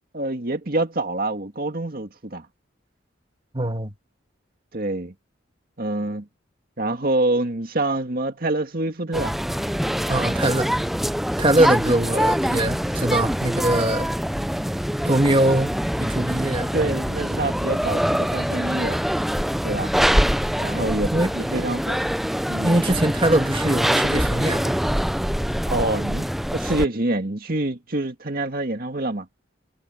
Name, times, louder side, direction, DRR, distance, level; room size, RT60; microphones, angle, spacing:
voice 1, 0.1-2.5 4.7-5.1 5.8-6.3 6.8-9.3 16.7-19.0 19.6-19.9 20.6-22.0 22.5-22.8 25.7-26.3 26.5-29.3, right 2 dB, 50° right, 2.1 m, -26 dB
voice 2, 3.5-3.9 10.1-10.8 11.4-14.1 15.0-16.7 20.7-20.9 21.1-21.3 22.6-24.8, right 1 dB, 25° right, 2.0 m, -22 dB
sound 1, 9.1-26.9, equal, ahead, 0.4 m, -24 dB
head